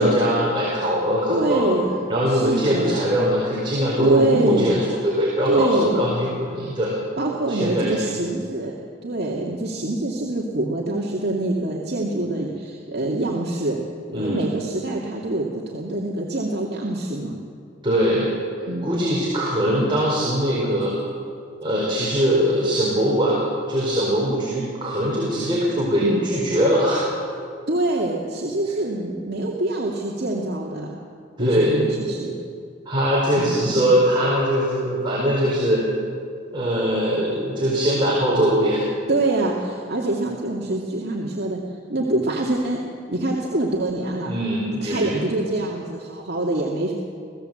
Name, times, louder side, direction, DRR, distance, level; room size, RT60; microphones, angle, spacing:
voice 1, 0.0-1.6 2.1-6.9 7.5-8.1 14.1-14.5 17.8-18.3 18.8-20.9 21.6-23.4 23.7-27.0 31.4-31.8 32.9-35.8 36.5-38.8 44.3-45.2, equal, 25° right, -5 dB, 4.5 m, -21 dB
voice 2, 1.3-1.9 2.2-3.0 4.0-4.7 5.5-6.2 7.2-8.8 9.0-13.8 14.1-17.4 18.7-19.0 26.0-26.3 27.7-31.0 31.4-32.3 33.4-33.9 39.1-41.6 41.9-42.8 43.1-44.3 44.8-46.9, right 2 dB, 55° right, -3 dB, 2.3 m, -25 dB
26.0 x 16.5 x 7.9 m, 2.3 s
head